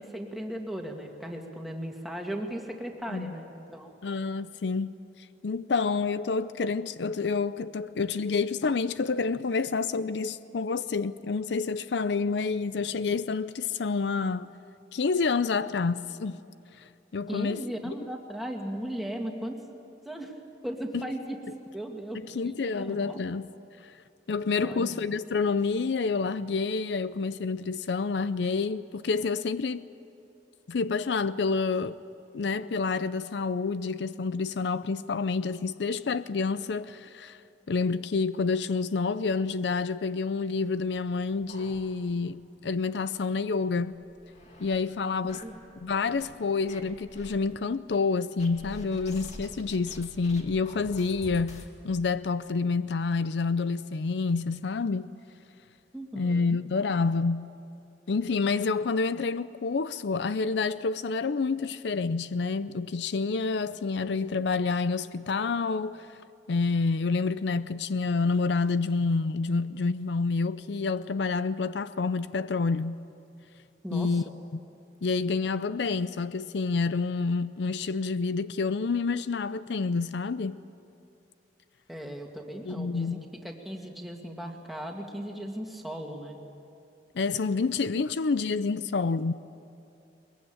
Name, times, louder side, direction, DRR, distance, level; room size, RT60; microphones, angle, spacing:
voice 1, 0.0-4.0 17.3-19.6 20.0-20.3 20.6-21.4 21.7-23.2 24.6-25.0 45.2-45.6 55.9-56.6 73.8-74.2 81.9-86.4, right 1 dB, ahead, 2.1 m, -37 dB
voice 2, 4.0-4.9 5.4-14.5 14.9-16.4 17.1-17.6 20.9-21.0 22.3-23.5 23.8-23.9 24.3-29.8 30.7-32.0 32.3-37.4 37.7-44.0 44.6-45.4 45.8-55.1 56.1-57.5 58.1-66.1 66.5-73.0 73.9-74.2 75.0-80.6 82.6-83.2 87.1-89.3, left 4 dB, 75° left, 0.5 m, -28 dB
sound 1, 41.5-42.3 42.7-42.8 43.1-43.2 43.8-44.8 45.3-46.3 46.7-47.4 48.4-51.7, left 1 dB, 40° left, 2.5 m, -47 dB
22.0 x 21.5 x 8.9 m
head